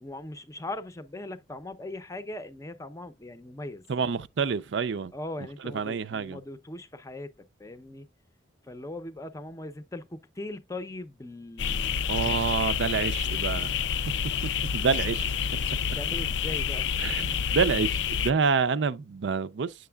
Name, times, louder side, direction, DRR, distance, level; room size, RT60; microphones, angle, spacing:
voice 1, 0.0-3.9 5.1-8.1 8.7-12.0 14.8-15.2 16.0-16.9, left 1 dB, 15° left, 0.6 m, -40 dB
voice 2, 3.9-5.1 5.7-6.4 12.1-14.4 14.7-15.3 17.0-19.7, right 5 dB, 70° right, 0.5 m, -28 dB
sound 1, 11.6-18.3, left 7 dB, 70° left, 0.4 m, -28 dB
7.8 x 6.5 x 2.3 m
head